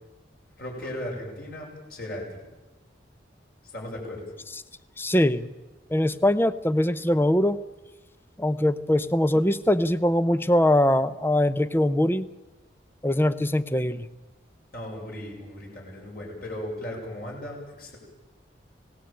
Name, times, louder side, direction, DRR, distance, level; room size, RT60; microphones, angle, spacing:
voice 1, 0.6-2.2 3.6-4.2 14.7-18.0, left 1 dB, 50° left, -1 dB, 7.4 m, -36 dB
voice 2, 5.0-5.5 5.9-7.6 8.4-12.3 13.0-14.1, left 1 dB, 10° left, 14 dB, 0.8 m, -22 dB
27.0 x 18.0 x 9.0 m, 1.1 s
head